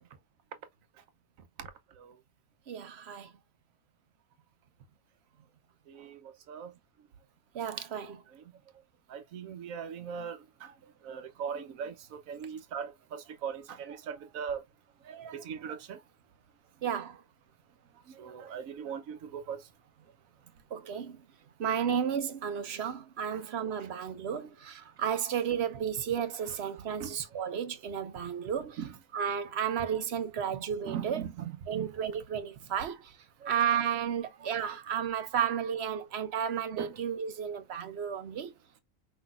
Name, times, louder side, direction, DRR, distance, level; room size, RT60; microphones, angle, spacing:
voice 1, 2.7-3.3 7.5-8.2 16.8-17.2 20.7-21.2 21.6-28.8 29.1-31.2 31.7-33.1 33.5-38.5, right 8 dB, 60° right, 0.9 m, -33 dB
voice 2, 5.9-6.7 8.3-8.4 9.1-10.7 11.0-14.6 15.0-16.0 18.1-19.7 23.3-23.4 23.8-23.9 26.4-27.4 28.2-28.3 28.8-29.0 30.8-31.9 33.4-33.5 34.4-34.5 36.8-37.0, right 7 dB, 85° right, 1.2 m, -40 dB
5.8 x 3.2 x 2.4 m
omnidirectional pair, 1.4 m